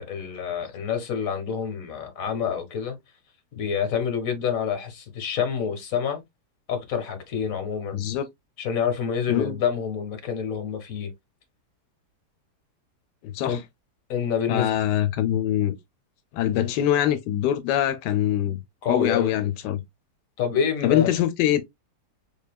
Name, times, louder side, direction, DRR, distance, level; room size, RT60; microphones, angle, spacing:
voice 1, 0.0-3.0 3.6-6.2 6.7-8.0 8.6-11.1 13.4-13.6 14.1-14.8 16.5-16.7 18.8-19.3 20.4-21.1, left 7 dB, 60° left, 1.5 m, -27 dB
voice 2, 7.9-8.3 9.3-9.6 13.2-13.6 14.5-15.7 16.3-18.6 18.9-19.8 20.8-21.6, left 11 dB, 90° left, 1.2 m, -23 dB
3.9 x 3.5 x 2.2 m
omnidirectional pair, 1.8 m